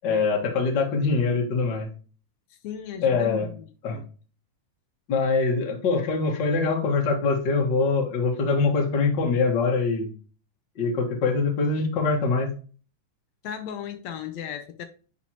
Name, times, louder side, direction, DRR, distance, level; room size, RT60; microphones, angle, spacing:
voice 1, 0.0-1.9 3.0-3.5 3.8-4.0 5.1-10.1 10.8-12.5, left 4 dB, 45° left, 1.8 m, -23 dB
voice 2, 2.6-4.0 13.4-14.9, left 8 dB, 75° left, 1.7 m, -36 dB
9.5 x 4.4 x 3.0 m
omnidirectional pair, 3.7 m